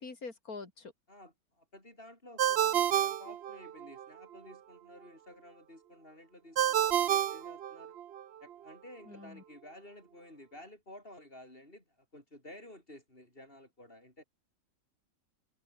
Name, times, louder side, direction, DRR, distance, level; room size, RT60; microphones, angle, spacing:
voice 1, 0.0-0.9 9.1-9.4, left 4 dB, 80° left, 3.5 m, -44 dB
voice 2, 1.1-8.0 8.4-14.2, left 1 dB, 40° left, 7.6 m, -53 dB
Ringtone, 2.4-4.1 6.6-8.2, right 10 dB, 55° right, 0.8 m, -29 dB
omnidirectional pair, 1.5 m